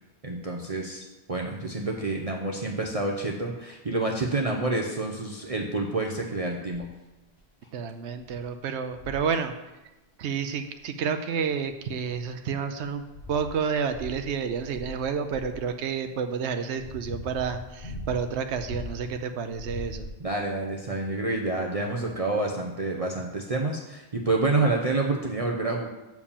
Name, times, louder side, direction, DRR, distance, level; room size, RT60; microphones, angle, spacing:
voice 1, 0.2-6.9 20.2-25.9, right 2 dB, 35° right, 0 dB, 0.8 m, -28 dB
sound 1, 6.7-7.0 7.6-7.7 8.2-8.4 8.9-9.3 10.7-10.8 11.6-12.3 12.8-15.7 16.4-19.2 19.5-20.4 21.3-21.4, left 1 dB, 50° left, 1.2 m, -41 dB
voice 2, 7.7-9.5 10.2-13.0 13.3-20.1, right 6 dB, 85° right, 7 dB, 0.9 m, -30 dB
7.2 x 4.6 x 7.0 m, 1.0 s
omnidirectional pair, 1.1 m